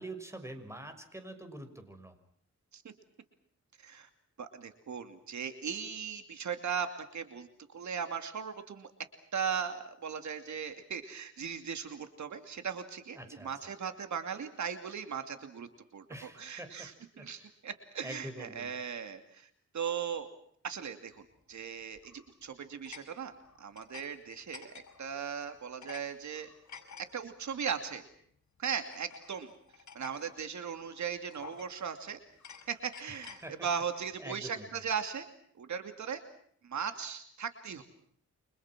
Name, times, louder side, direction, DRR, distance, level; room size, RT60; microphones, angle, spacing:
voice 1, 0.0-2.1 13.2-13.7 16.1-16.9 17.2-17.5 18.0-18.7 33.1-33.7 34.2-34.8, right 1 dB, 10° right, 8 dB, 6.2 m, -45 dB
voice 2, 3.8-4.1 4.4-8.9 9.3-19.5 19.7-20.3 20.6-23.3 23.6-26.5 27.0-28.0 28.6-29.5 29.9-32.2 32.7-35.3 35.5-36.2 36.6-37.8, right 7 dB, 75° right, 8 dB, 2.7 m, -38 dB
sound 1, 22.0-22.3 22.9-24.1 24.3-25.1 25.5-26.0 26.3-27.0 27.8-28.0 28.8-30.3 30.7-30.9 31.3-31.9 32.3-33.4, left 7 dB, 70° left, 6.2 m, -51 dB
29.5 x 26.0 x 6.1 m, 0.64 s
wide cardioid pair, 105°, 29 cm